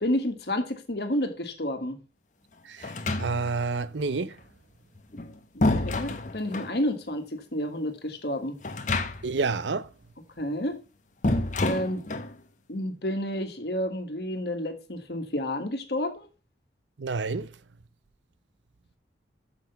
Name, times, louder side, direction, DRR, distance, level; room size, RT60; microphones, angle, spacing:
voice 1, 0.0-2.0 5.5-8.6 10.4-10.8 11.6-12.0 12.7-16.3, left 1 dB, 60° left, 1.7 m, -30 dB
sound 1, 2.8-3.7 4.9-6.8 8.6-9.5 9.7-9.8 11.2-12.4, left 2 dB, 40° left, 0.9 m, -28 dB
voice 2, 3.2-4.3 9.2-9.9 17.0-17.5, right 4 dB, 80° right, 0.6 m, -28 dB
6.8 x 6.0 x 6.9 m
head